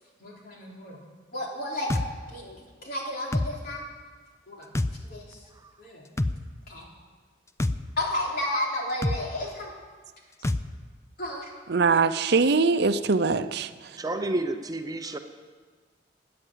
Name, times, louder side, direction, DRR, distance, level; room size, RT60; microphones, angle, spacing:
voice 1, 0.2-1.0 1.3-1.9 2.3-3.8 4.5-4.7 5.1-5.4 5.8-6.0 6.7-6.9 8.0-9.7 11.2-11.5, left 1 dB, 55° left, -2 dB, 3.6 m, -32 dB
sound 1, 1.9-2.1 3.3-3.5 4.8-4.9 6.2-6.4 7.6-7.8 9.0-9.2 10.4-10.6, left 1 dB, 15° left, 0.5 m, -25 dB
voice 2, 11.7-13.7, right 4 dB, 65° right, 11 dB, 0.6 m, -22 dB
voice 3, 14.0-15.2, right 2 dB, 20° right, 6 dB, 0.7 m, -30 dB
17.0 x 9.6 x 7.6 m, 1.5 s
head